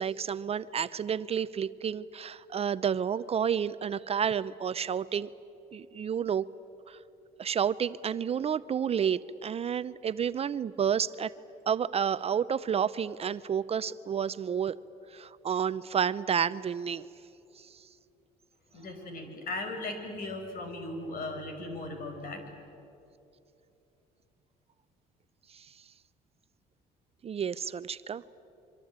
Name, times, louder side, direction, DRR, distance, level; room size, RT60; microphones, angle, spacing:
voice 1, 0.0-5.3 5.7-6.5 6.9-7.0 7.4-11.3 11.7-14.8 15.1-17.1 17.6-17.7 25.5-25.7 27.2-28.2, right 8 dB, 35° right, 15 dB, 0.6 m, -30 dB
voice 2, 18.7-22.4, left 2 dB, 55° left, 5 dB, 5.8 m, -37 dB
26.0 x 24.5 x 8.8 m, 2.9 s
cardioid pair, 110°, 17 cm